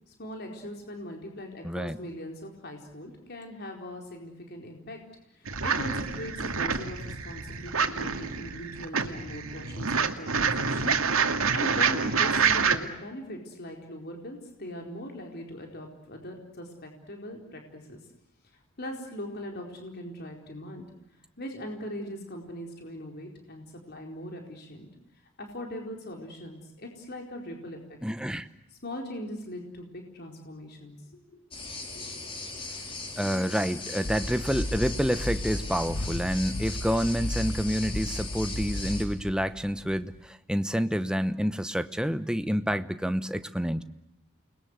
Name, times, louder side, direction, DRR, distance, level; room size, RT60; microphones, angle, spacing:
voice 1, 0.1-5.0 5.3-11.0 11.2-18.0 18.8-20.8 21.4-24.9 25.4-28.0 28.7-31.0 31.3-31.4 31.9-32.3, left 1 dB, 50° left, 2 dB, 4.4 m, -40 dB
voice 2, 1.6-2.0 28.0-28.5 33.2-43.8, equal, 5° right, 10 dB, 1.0 m, -28 dB
sound 1, 5.5-12.8, right 5 dB, 80° right, 2.2 m, -27 dB
sound 2, 31.5-39.0, left 3 dB, 25° left, 4.4 m, -39 dB
sound 3, 34.0-40.2, left 1 dB, 70° left, 1.4 m, -34 dB
29.0 x 21.5 x 8.1 m, 0.86 s
head